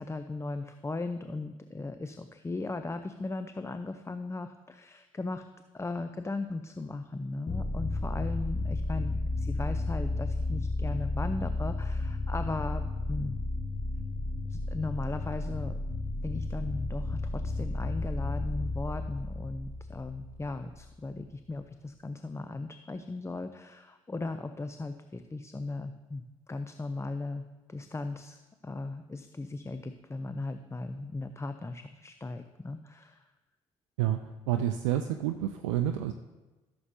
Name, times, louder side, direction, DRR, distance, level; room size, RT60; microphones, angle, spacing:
voice 1, 0.0-5.4 5.7-13.4 14.4-15.8 16.2-33.2, left 3 dB, 15° left, 9 dB, 0.6 m, -37 dB
sound 1, 7.5-20.9, left 2 dB, 35° left, 1.2 m, -33 dB
voice 2, 34.5-36.1, right 11 dB, 80° right, 8 dB, 0.4 m, -29 dB
15.0 x 7.0 x 2.8 m, 1.2 s
hypercardioid pair, 45°, 16 cm